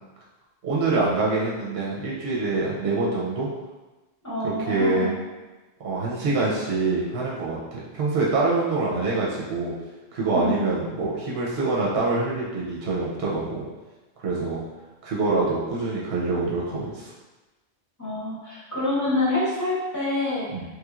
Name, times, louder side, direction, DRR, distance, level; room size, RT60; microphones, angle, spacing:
voice 1, 0.6-3.5 4.4-5.1 5.8-9.7 10.1-13.6 14.2-14.6 15.0-17.1 20.5-20.6, right 3 dB, 65° right, -5 dB, 0.9 m, -25 dB
voice 2, 4.2-5.2 10.3-10.6 18.0-20.4, left 2 dB, 15° left, -8 dB, 0.9 m, -26 dB
3.3 x 3.0 x 2.4 m, 1.1 s
omnidirectional pair, 1.1 m